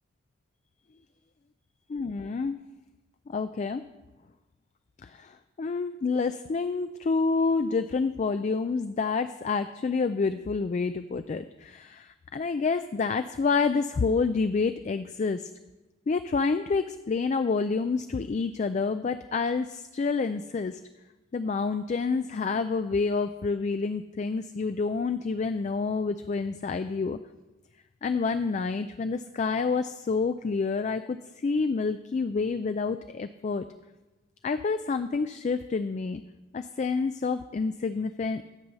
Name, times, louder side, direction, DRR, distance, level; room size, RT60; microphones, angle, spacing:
voice 1, 1.9-2.6 3.3-3.8 5.0-15.5 16.1-20.8 21.3-27.2 28.0-33.7 34.4-36.2 36.5-38.4, left 4 dB, 35° left, 10 dB, 0.3 m, -28 dB
12.0 x 5.5 x 8.0 m, 1.1 s
head